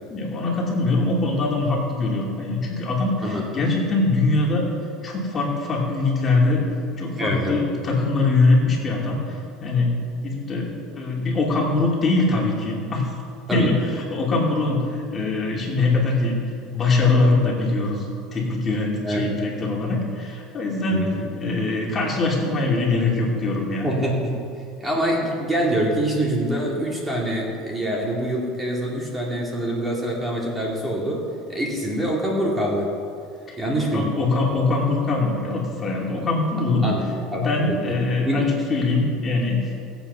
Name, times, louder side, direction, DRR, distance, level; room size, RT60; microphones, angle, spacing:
voice 1, 0.1-4.7 5.0-6.6 7.0-9.3 9.6-13.1 13.5-13.7 14.1-16.4 16.7-18.0 18.3-21.1 21.4-23.9 33.5-33.6 33.9-36.9 37.3-39.9, left 3 dB, 25° left, -3 dB, 2.8 m, -22 dB
voice 2, 7.2-7.6 13.5-13.7 19.0-19.3 20.9-21.2 23.8-24.4 24.8-31.2 31.5-32.9 33.6-34.1 36.8-38.0 38.2-38.5, right 1 dB, 15° right, -3 dB, 2.4 m, -25 dB
18.0 x 8.2 x 5.6 m, 2.4 s
supercardioid pair, 135°, 0 cm